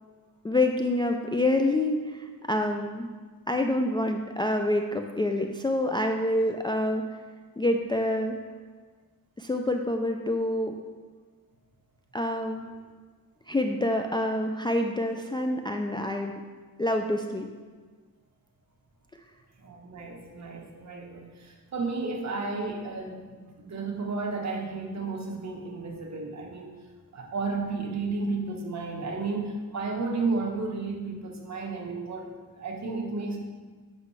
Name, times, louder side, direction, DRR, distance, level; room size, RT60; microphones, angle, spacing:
voice 1, 0.4-3.1 3.5-7.0 7.6-8.4 9.4-10.7 12.1-12.7 13.5-16.4 16.8-17.5, left 1 dB, 15° left, 4 dB, 0.3 m, -27 dB
voice 2, 19.6-26.8 27.1-33.4, right 3 dB, 50° right, 1 dB, 1.2 m, -33 dB
8.1 x 5.5 x 3.2 m, 1.5 s
cardioid pair, 100°, 35 cm